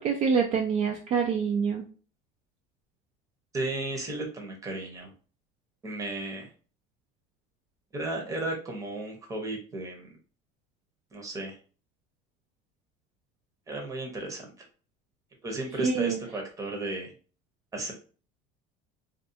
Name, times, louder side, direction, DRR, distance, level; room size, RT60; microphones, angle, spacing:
voice 1, 0.0-1.9 15.8-16.2, right 6 dB, 45° right, 2 dB, 0.4 m, -26 dB
voice 2, 3.5-5.1 5.8-6.5 7.9-10.1 11.1-11.6 13.7-14.4 15.4-17.1 17.7-17.9, right 2 dB, 20° right, 1 dB, 0.8 m, -34 dB
2.4 x 2.3 x 2.7 m, 0.38 s
supercardioid pair, 125°, 17 cm